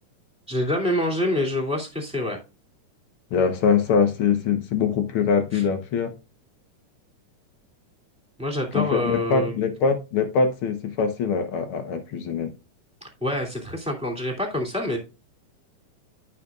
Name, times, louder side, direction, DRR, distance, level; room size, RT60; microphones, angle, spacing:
voice 1, 0.5-2.4 5.5-5.6 8.4-9.5 13.2-15.0, left 1 dB, ahead, 2.0 m, -26 dB
voice 2, 3.3-6.1 8.7-12.5, left 6 dB, 65° left, 1.3 m, -23 dB
14.5 x 5.9 x 2.4 m
omnidirectional pair, 3.8 m